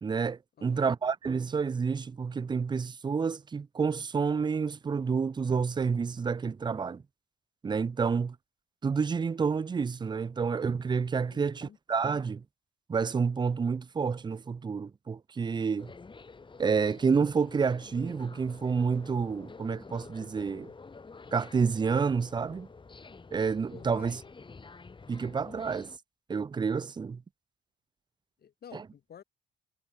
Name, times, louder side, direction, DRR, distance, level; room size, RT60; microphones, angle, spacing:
voice 1, 0.0-7.0 7.6-8.4 8.8-12.4 12.9-15.9 16.6-20.7 21.3-22.7 23.3-24.2 25.1-25.9 26.3-27.2 28.7-28.8, right 5 dB, 20° right, 0.4 m, -29 dB
voice 2, 0.6-0.9 11.3-11.8 23.7-24.2 28.4-29.2, left 8 dB, 50° left, 1.4 m, -51 dB
sound 1, 15.8-26.0, left 4 dB, 25° left, 1.5 m, -49 dB
cardioid pair, 90°, 20 cm